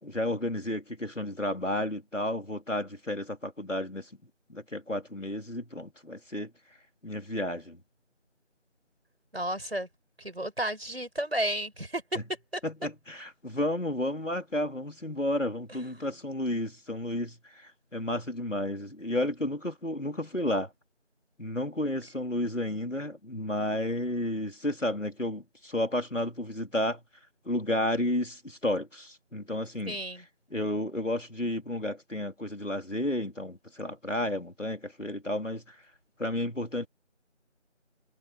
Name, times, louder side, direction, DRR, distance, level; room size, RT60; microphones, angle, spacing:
voice 1, 0.0-4.1 4.5-6.5 7.0-7.8 12.2-12.3 12.6-20.7 21.4-27.0 27.4-30.0 30.5-35.8 36.2-36.9, left 1 dB, 85° left, 4.3 m, -32 dB
voice 2, 9.3-9.9 10.2-12.2 12.5-12.6 15.7-15.8 29.9-30.2, right 1 dB, 55° right, 6.3 m, -32 dB
figure-of-eight pair, 175°, 36 cm